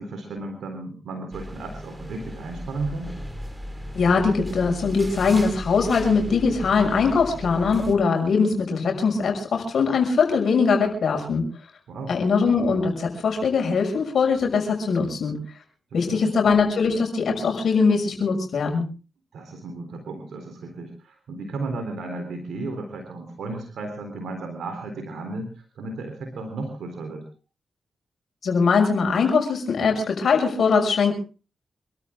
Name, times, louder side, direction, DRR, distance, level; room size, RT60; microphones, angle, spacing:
voice 1, 0.0-3.1 11.9-12.2 15.9-16.3 19.3-27.2, right 3 dB, 80° right, 5 dB, 3.9 m, -34 dB
sound 1, 1.3-7.9, equal, 15° right, 4.4 m, -36 dB
voice 2, 3.9-11.5 12.1-15.4 15.9-18.8 28.4-31.1, left 5 dB, 70° left, 3 dB, 6.2 m, -21 dB
27.5 x 13.5 x 3.7 m, 0.36 s
supercardioid pair, 45°, 0 cm